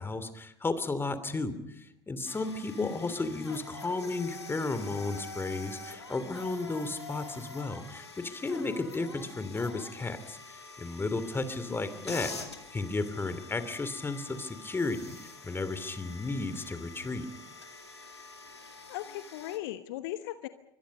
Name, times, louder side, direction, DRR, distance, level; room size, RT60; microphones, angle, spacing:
voice 1, 0.0-17.3, left 3 dB, 15° left, 12 dB, 2.9 m, -34 dB
sound 1, 2.3-19.6, left 3 dB, 85° left, 2.3 m, -46 dB
voice 2, 2.8-3.2 11.7-12.1 18.6-20.5, left 15 dB, 60° left, 11 dB, 1.2 m, -39 dB
27.0 x 24.0 x 5.4 m, 0.72 s
figure-of-eight pair, 70°, 14 cm